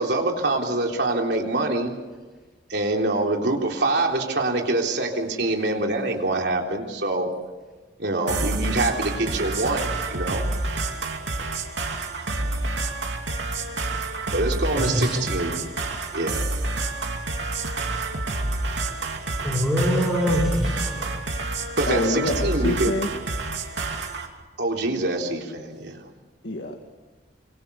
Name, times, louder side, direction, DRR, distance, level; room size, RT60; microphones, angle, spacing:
voice 1, 0.0-1.9 2.7-7.3 8.0-10.4 14.3-15.6 16.1-16.4 21.8-22.9 24.6-26.0, right 2 dB, 65° right, 1 dB, 3.7 m, -25 dB
sound 1, 8.3-24.3, right 2 dB, 90° right, 2.7 m, -28 dB
voice 2, 11.9-12.2 21.9-23.1 26.4-26.8, left 1 dB, 65° left, 3 dB, 2.0 m, -27 dB
voice 3, 14.8-15.2 19.4-21.1, equal, ahead, -4 dB, 4.8 m, -23 dB
26.0 x 25.0 x 6.9 m, 1.3 s
head